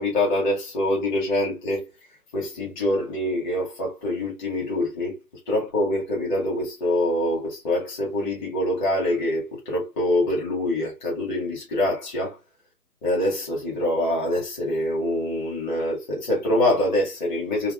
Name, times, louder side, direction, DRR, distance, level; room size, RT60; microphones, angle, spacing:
voice 1, 0.0-1.8 2.3-5.2 5.5-12.4 13.0-17.7, left 1 dB, 30° left, 2.3 m, -25 dB
5.7 x 2.7 x 2.5 m
figure-of-eight pair, 135°, 48 cm